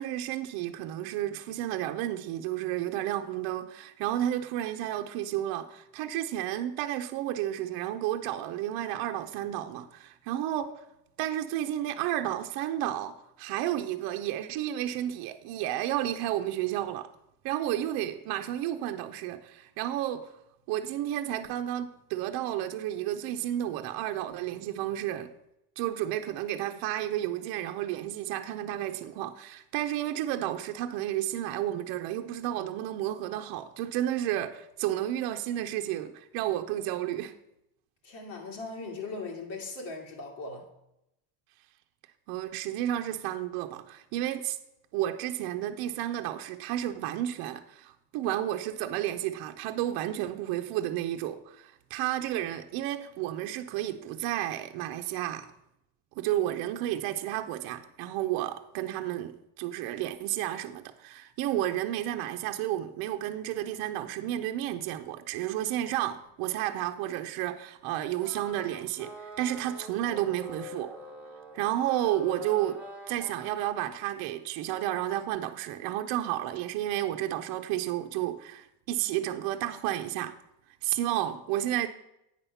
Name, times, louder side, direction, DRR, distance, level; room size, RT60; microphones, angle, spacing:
voice 1, 0.0-10.9 11.2-17.1 17.4-20.3 20.7-25.3 25.8-37.3 42.3-44.6 44.9-55.5 56.2-70.9 71.5-72.8 73.1-80.3 80.8-81.9, right 12 dB, 55° right, 0.6 m, -32 dB
voice 2, 38.0-40.7, left 3 dB, 75° left, 2.3 m, -39 dB
sound 1, 68.2-73.6, equal, 5° right, 1.0 m, -45 dB
9.0 x 5.6 x 5.6 m
cardioid pair, 170°, 44 cm